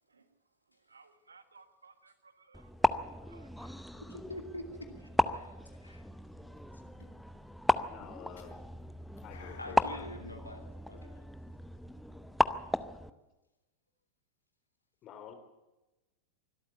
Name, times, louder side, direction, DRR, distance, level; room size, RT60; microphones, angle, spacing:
voice 1, 0.9-3.7, right 4 dB, 75° right, 11 dB, 1.6 m, -60 dB
sound 1, 2.5-13.1, equal, ahead, 0.7 m, -34 dB
voice 2, 4.1-5.5 5.8-6.1 9.6-10.6 10.9-11.2, left 1 dB, 85° left, 4 dB, 2.6 m, -45 dB
sound 2, 6.3-6.7 7.0-11.9, left 6 dB, 60° left, 3.6 m, -58 dB
voice 3, 7.9-8.7 9.2-10.1 13.0-13.2 15.0-15.3, left 7 dB, 35° left, 7 dB, 3.5 m, -49 dB
23.5 x 13.0 x 8.6 m, 1.1 s
figure-of-eight pair, 90°, 0 cm